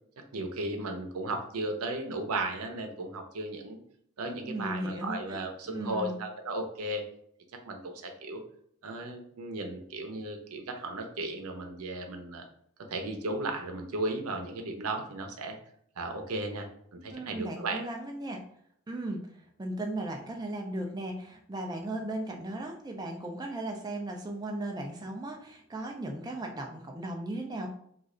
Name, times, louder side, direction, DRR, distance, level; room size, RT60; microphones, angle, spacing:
voice 1, 0.3-3.8 4.2-7.0 7.6-8.4 8.8-12.4 12.9-15.6 16.0-17.8, right 2 dB, 90° right, 4 dB, 0.7 m, -35 dB
voice 2, 4.3-5.4 5.7-6.2 17.1-18.4 18.9-27.7, right 1 dB, 20° right, 1 dB, 0.4 m, -36 dB
3.1 x 2.5 x 3.7 m, 0.68 s
head